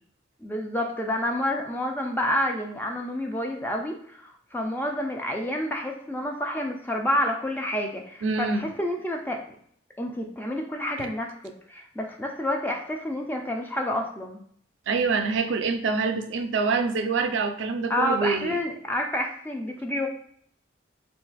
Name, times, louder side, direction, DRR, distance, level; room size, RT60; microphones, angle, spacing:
voice 1, 0.4-9.4 10.0-11.3 11.7-14.4 17.9-20.1, left 1 dB, 10° left, 2 dB, 0.3 m, -29 dB
voice 2, 8.2-8.8 11.0-11.1 14.9-18.6, right 4 dB, 90° right, 7 dB, 0.4 m, -26 dB
2.4 x 2.3 x 3.9 m, 0.65 s
head